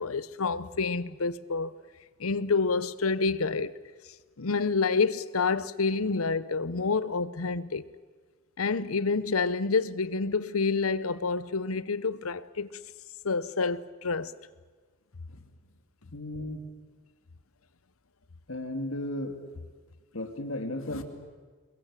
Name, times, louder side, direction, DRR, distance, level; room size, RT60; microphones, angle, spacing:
voice 1, 0.0-1.7 2.2-3.7 4.4-7.9 8.6-12.8 13.2-14.3, left 4 dB, 90° left, 0.9 m, -28 dB
voice 2, 16.1-16.6 18.5-19.3 20.1-21.0, left 1 dB, 70° left, 2.5 m, -34 dB
28.5 x 22.5 x 7.5 m
head